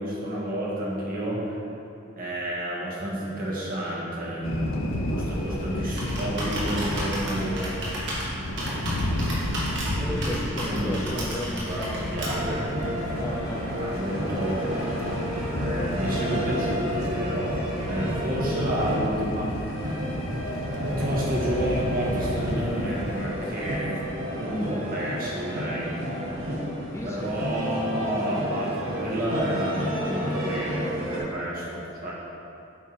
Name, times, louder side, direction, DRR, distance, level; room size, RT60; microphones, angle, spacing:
voice 1, 0.0-1.6 2.2-7.9 8.5-9.4 10.0-10.2 10.6-13.0 13.7-14.6 15.6-19.8 20.8-24.0 24.4-25.9 27.0-32.1, right 1 dB, 45° right, -5 dB, 1.6 m, -30 dB
sound 1, 4.4-23.2, left 1 dB, 85° left, 0.7 m, -33 dB
Computer keyboard, 5.3-12.6, right 1 dB, 60° right, 1.7 m, -33 dB
voice 2, 10.0-12.7 13.1-13.7 26.9-27.4, left 1 dB, 15° left, -2 dB, 0.5 m, -33 dB
sound 2, 11.9-31.2, equal, 85° right, 1.4 m, -31 dB
8.2 x 4.7 x 4.5 m, 2.7 s
head